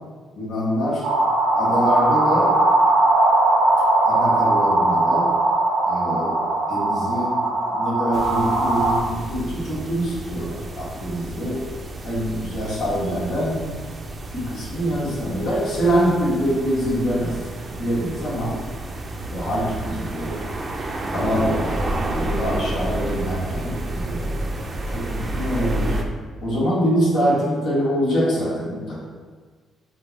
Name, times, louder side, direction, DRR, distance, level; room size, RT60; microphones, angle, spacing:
voice 1, 0.3-1.1 1.5-2.6 4.0-5.3 5.9-6.4 6.7-11.7 12.0-13.7 14.3-17.4 17.7-18.6 19.3-20.4 21.1-21.9 22.1-24.4 24.9-26.0 26.4-29.0, equal, 75° left, -6 dB, 1.4 m, -24 dB
sound 1, 1.0-9.0, right 2 dB, 90° right, 0.8 m, -19 dB
sound 2, 8.1-26.0, right 1 dB, 35° right, 0.5 m, -30 dB
5.3 x 2.2 x 4.1 m, 1.5 s
cardioid pair, 90°, 0 cm